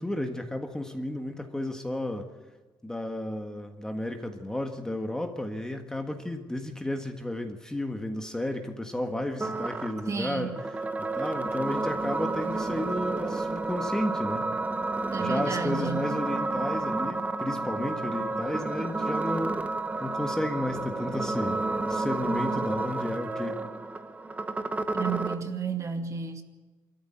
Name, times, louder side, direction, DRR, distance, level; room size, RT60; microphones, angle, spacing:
voice 1, 0.0-2.3 2.8-10.6 11.0-14.5 15.2-19.6 20.0-23.6, left 1 dB, 10° left, 4 dB, 1.6 m, -33 dB
sound 1, 9.4-25.4, right 3 dB, 15° right, 1.2 m, -31 dB
voice 2, 10.1-10.6 15.1-16.2 24.9-26.4, right 5 dB, 35° right, 5 dB, 2.2 m, -32 dB
25.5 x 14.0 x 9.0 m, 1.3 s
cardioid pair, 125°, 9 cm